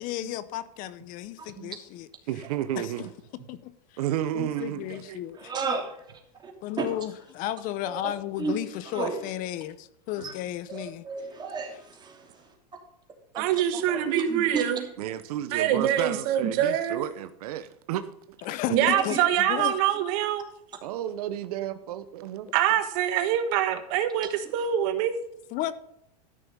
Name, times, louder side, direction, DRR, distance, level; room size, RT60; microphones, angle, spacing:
voice 1, 0.0-2.1 2.8-3.1 3.5-3.7 4.3-5.5 6.6-11.0 18.4-19.7 25.5-25.7, left 13 dB, 45° left, 0.8 m, -33 dB
voice 2, 2.3-3.1 4.0-5.2 15.0-18.1 20.8-22.5, right 12 dB, 70° right, 0.8 m, -32 dB
voice 3, 5.4-6.0 6.4-6.5 6.8-6.9 7.8-8.6 8.9-9.2 10.2-10.3 10.7-12.5 13.3-14.6 19.1-19.3 24.2-24.3, right 4 dB, 20° right, 2.9 m, -33 dB
voice 4, 13.3-14.8 15.5-17.1 18.7-20.5 22.5-25.2, right 10 dB, 55° right, 1.5 m, -25 dB
13.5 x 6.4 x 5.4 m
supercardioid pair, 130°, 20 cm